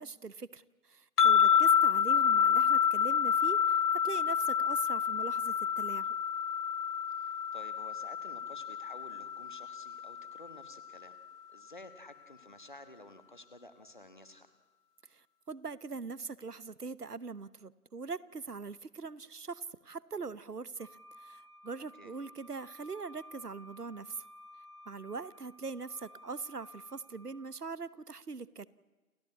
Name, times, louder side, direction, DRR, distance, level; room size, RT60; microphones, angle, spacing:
voice 1, 0.0-6.2 15.1-20.9 21.2-24.2 24.9-28.7, right 4 dB, 85° right, 19 dB, 1.0 m, -42 dB
sound 1, 1.2-10.4, left 8 dB, 85° left, 0.7 m, -28 dB
voice 2, 7.1-11.2 11.5-14.5 22.0-22.1, left 2 dB, 30° left, 11 dB, 1.3 m, -52 dB
Wind instrument woodwind instrument, 20.8-27.5, left 1 dB, 70° right, 2.8 m, -54 dB
28.5 x 14.0 x 8.6 m, 1.2 s
figure-of-eight pair, 165°, 46 cm